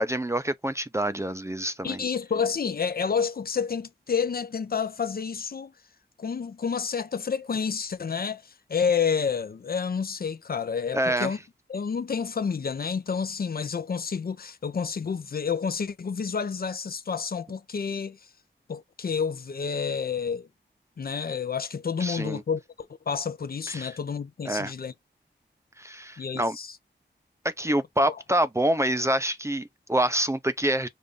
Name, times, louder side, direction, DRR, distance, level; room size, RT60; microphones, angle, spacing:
voice 1, 0.0-2.0 10.9-11.3 22.0-22.4 23.7-23.9 24.5-24.7 25.8-26.6 27.4-30.9, right 1 dB, 15° right, 0.4 m, -26 dB
voice 2, 1.8-5.7 6.2-11.4 11.7-18.2 18.7-20.5 21.0-22.6 23.1-24.9 26.2-26.8 28.0-28.2, left 6 dB, 55° left, 0.5 m, -29 dB
5.3 x 2.5 x 3.4 m
wide cardioid pair, 105°, 19 cm